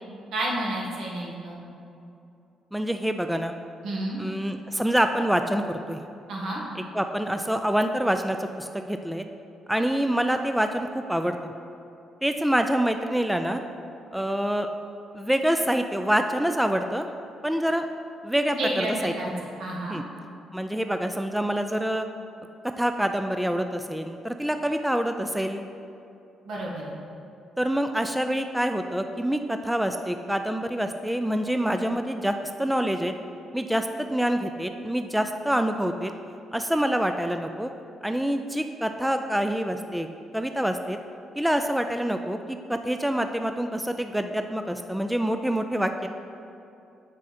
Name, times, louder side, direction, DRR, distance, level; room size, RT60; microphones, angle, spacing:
voice 1, 0.3-1.6 3.8-4.2 6.3-6.6 18.5-19.3 19.6-20.0 26.5-27.0, right 1 dB, 75° right, -3 dB, 1.8 m, -30 dB
voice 2, 2.7-3.5 4.2-6.0 6.9-9.2 9.7-11.5 12.2-13.6 14.1-14.7 15.1-17.1 17.4-17.8 18.2-19.4 19.9-20.0 20.5-22.1 22.6-25.6 27.6-33.1 33.5-36.1 36.5-37.7 38.0-40.1 40.3-41.0 41.4-42.4 42.7-46.1, equal, 5° right, 7 dB, 0.3 m, -26 dB
7.4 x 6.2 x 4.2 m, 2.7 s
cardioid pair, 90°, 0 cm